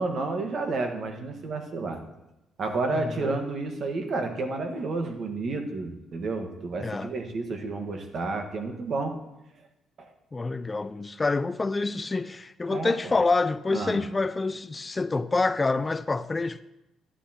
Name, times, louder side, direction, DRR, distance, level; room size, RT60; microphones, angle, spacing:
voice 1, 0.0-2.0 2.6-9.1 10.0-10.1 12.7-12.9 13.7-14.0, right 3 dB, 55° right, 1.3 m, -30 dB
voice 2, 2.9-3.4 6.8-7.1 10.3-16.6, left 3 dB, 25° left, 0.3 m, -27 dB
12.5 x 10.0 x 2.9 m
cardioid pair, 90°, 0 cm